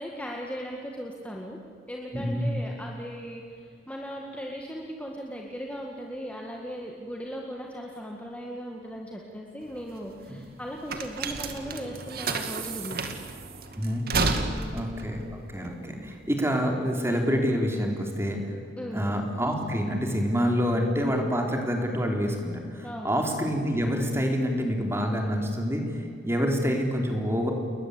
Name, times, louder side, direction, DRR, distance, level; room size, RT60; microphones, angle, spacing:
voice 1, 0.0-1.6 1.9-13.0 14.5-14.7 18.8-19.0 22.8-23.1, equal, 5° left, 0 dB, 2.0 m, -38 dB
sound 1, 9.6-16.4, right 3 dB, 50° right, 2.3 m, -32 dB
voice 2, 14.7-18.5 18.9-25.8 26.2-27.5, equal, 15° right, 2 dB, 4.1 m, -27 dB
30.0 x 21.5 x 8.6 m, 2.4 s
head